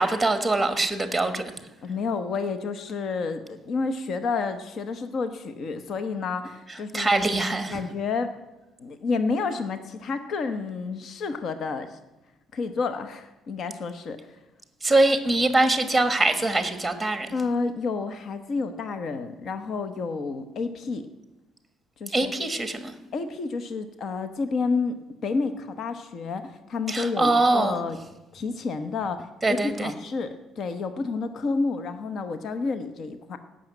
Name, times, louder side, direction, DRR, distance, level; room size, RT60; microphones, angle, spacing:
voice 1, 0.0-1.4 6.7-7.8 14.8-17.3 22.1-22.9 26.9-27.8 29.4-29.9, right 2 dB, 5° right, 9 dB, 1.3 m, -23 dB
voice 2, 1.8-7.1 7.7-8.3 8.8-12.0 12.5-14.4 17.3-21.1 22.0-22.3 23.1-25.0 25.2-28.0 28.3-33.4, left 4 dB, 45° left, 10 dB, 1.0 m, -30 dB
16.5 x 6.4 x 9.1 m, 1.0 s
cardioid pair, 160°, 0 cm